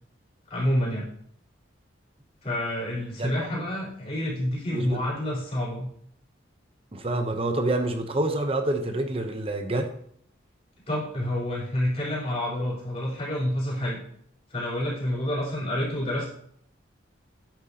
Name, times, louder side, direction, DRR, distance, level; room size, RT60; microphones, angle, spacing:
voice 1, 0.5-1.1 2.4-5.9 10.9-14.0 14.5-16.3, left 1 dB, 35° left, -6 dB, 4.0 m, -28 dB
voice 2, 3.2-3.7 4.7-5.0 6.9-9.9, right 2 dB, 30° right, 6 dB, 0.8 m, -27 dB
10.5 x 8.8 x 2.9 m, 0.66 s
head